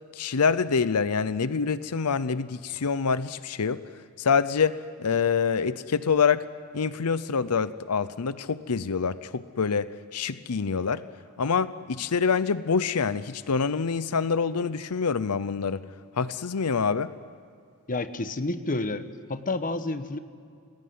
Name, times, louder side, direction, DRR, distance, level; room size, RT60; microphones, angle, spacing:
voice 1, 0.1-3.8 4.2-6.4 6.7-11.0 11.4-15.8 16.1-17.1, left 5 dB, 85° left, 15 dB, 0.7 m, -26 dB
voice 2, 17.9-20.2, left 2 dB, 40° left, 10 dB, 1.2 m, -30 dB
28.5 x 19.0 x 9.5 m, 2.3 s
head